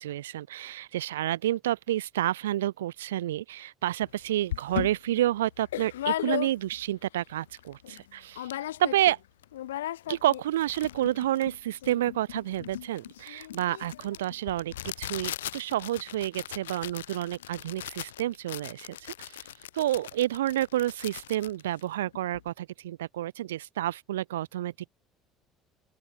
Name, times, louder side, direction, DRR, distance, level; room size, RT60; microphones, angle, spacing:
voice 1, 0.0-8.5 8.8-9.2 10.1-19.4 19.7-24.9, right 13 dB, 80° right, 1.1 m, -29 dB
sound 1, 4.0-4.1 4.5-6.9 7.3-7.4 7.6-8.0 8.3-9.2 9.4-22.5, left 13 dB, 85° left, 5.5 m, -37 dB
open air
hypercardioid pair, 65°, 0 cm